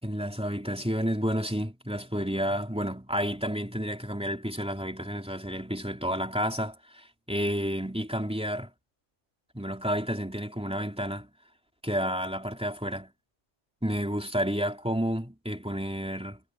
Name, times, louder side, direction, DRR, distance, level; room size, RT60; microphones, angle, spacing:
voice 1, 0.0-8.7 9.5-11.3 11.8-13.1 13.8-16.4, equal, 5° right, 3.1 m, -30 dB
omnidirectional pair, 1.3 m